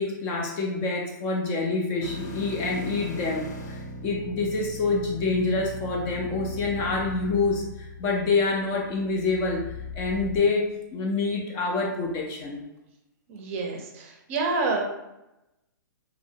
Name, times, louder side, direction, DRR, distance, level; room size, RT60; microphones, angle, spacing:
voice 1, 0.0-7.7 8.0-12.6, left 3 dB, 25° left, 0 dB, 0.4 m, -27 dB
sound 1, 2.0-10.4, left 2 dB, 50° left, 0.8 m, -39 dB
voice 2, 13.3-14.8, right 3 dB, 40° right, 2 dB, 0.5 m, -28 dB
2.7 x 2.1 x 2.7 m, 0.91 s
hypercardioid pair, 150°, 11 cm